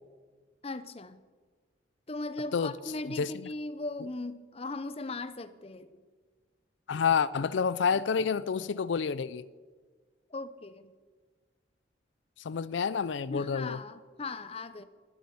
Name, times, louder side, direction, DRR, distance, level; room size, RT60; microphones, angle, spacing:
voice 1, 0.6-1.2 2.1-6.0 7.9-8.0 10.3-10.9 13.3-14.8, left 2 dB, 35° left, 12 dB, 0.7 m, -38 dB
voice 2, 6.9-9.4 12.4-13.8, left 6 dB, 80° left, 17 dB, 0.4 m, -29 dB
12.5 x 9.3 x 9.4 m, 1.5 s
head